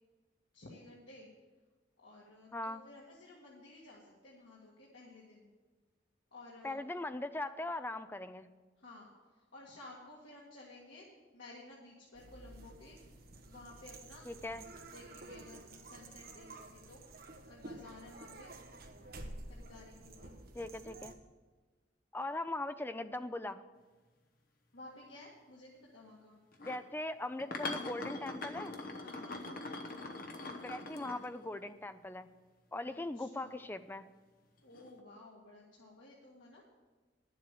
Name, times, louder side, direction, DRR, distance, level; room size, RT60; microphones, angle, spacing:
voice 1, 0.5-1.3 2.0-5.5 6.3-6.8 8.8-11.1 11.3-14.2 14.9-17.0 17.5-18.5 19.5-20.3 24.7-26.4 29.0-29.4 33.1-33.7 34.6-36.6, left 2 dB, 90° left, -4 dB, 2.0 m, -54 dB
voice 2, 2.5-2.8 6.6-8.5 14.3-14.6 20.5-21.1 22.1-23.6 26.6-28.8 30.6-32.3 32.7-34.1, left 2 dB, 10° left, 11 dB, 0.4 m, -40 dB
sound 1, 12.1-21.1, right 2 dB, 55° right, 1.2 m, -51 dB
sound 2, 26.5-26.8 27.4-31.7 34.7-35.0, left 2 dB, 50° left, 1.0 m, -42 dB
10.5 x 7.7 x 7.5 m, 1.3 s
head